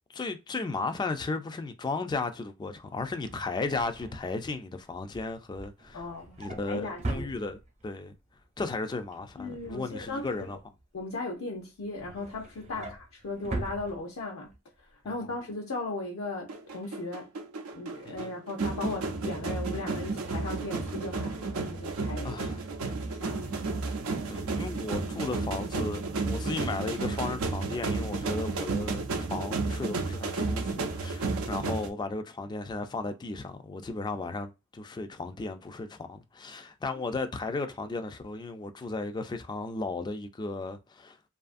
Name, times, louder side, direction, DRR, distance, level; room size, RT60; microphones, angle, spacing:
voice 1, 0.1-6.0 6.4-8.1 8.6-10.6 12.7-12.9 15.2-15.3 18.0-18.3 22.2-22.6 24.3-41.2, left 3 dB, 20° left, 0.3 m, -35 dB
Drawer open or close, 2.9-8.0 8.4-8.7 8.9-11.2 11.6-14.6 14.9-15.1 15.4-15.5, right 2 dB, 30° right, 0.6 m, -42 dB
voice 2, 5.9-6.4 6.7-7.3 9.4-10.5 10.9-14.5 14.8-17.3 17.7-22.4 23.0-23.6, left 2 dB, 70° left, 0.5 m, -37 dB
sound 1, 16.5-31.9, right 3 dB, 90° right, 0.5 m, -32 dB
2.6 x 2.4 x 2.5 m
head